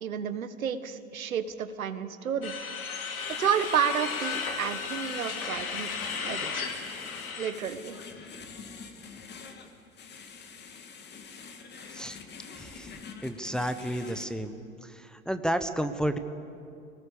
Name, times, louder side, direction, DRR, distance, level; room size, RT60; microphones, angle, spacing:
voice 1, 0.0-2.5 3.3-5.9 6.2-6.7 7.4-8.0, right 8 dB, 75° right, 11 dB, 1.4 m, -31 dB
sound 1, 2.4-7.5, left 5 dB, 80° left, 3.0 m, -35 dB
sound 2, 3.2-14.2, left 5 dB, 25° left, 2.4 m, -46 dB
voice 2, 12.6-13.0 13.2-14.5 14.8-16.2, right 1 dB, ahead, 8 dB, 0.9 m, -31 dB
25.0 x 19.0 x 7.0 m, 2.4 s
hypercardioid pair, 100°, 41 cm